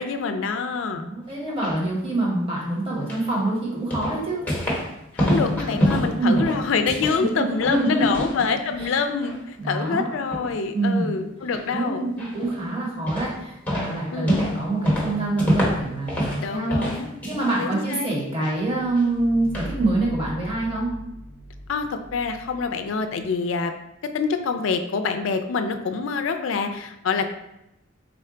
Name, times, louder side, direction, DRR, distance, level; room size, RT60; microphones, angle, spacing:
voice 1, 0.0-1.0 5.1-12.1 14.1-14.4 16.4-17.1 17.6-18.2 21.7-23.7 24.1-27.2, left 5 dB, 65° left, 7 dB, 0.3 m, -26 dB
voice 2, 0.9-4.5 6.2-6.5 7.3-8.2 8.8-9.0 9.6-10.1 10.7-11.1 11.7-16.8 17.2-20.9, right 2 dB, 25° right, -4 dB, 0.9 m, -25 dB
sound 1, 1.3-1.7 3.1-3.3 3.9-4.9 5.2-7.2 7.5-8.4 8.7-9.4 9.8-9.9 10.3-10.6 11.5-11.7 12.2-12.6 13.1-13.4 13.7-16.4 16.7-17.6 17.9-18.5 19.0-19.1 19.5-19.7, equal, 10° left, 0.8 m, -26 dB
sound 2, 18.7-23.3, equal, 80° right, 1.1 m, -39 dB
3.7 x 2.2 x 3.7 m, 0.86 s
head